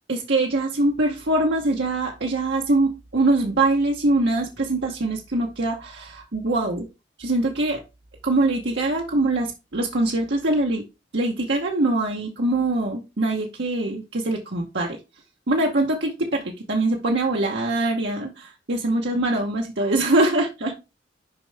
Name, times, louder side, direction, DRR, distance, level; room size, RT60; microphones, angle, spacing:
voice 1, 0.1-6.8 7.2-7.8 8.2-10.8 11.1-15.0 15.5-20.8, right 2 dB, 70° right, 0 dB, 1.0 m, -23 dB
6.7 x 5.5 x 3.4 m, 0.26 s
head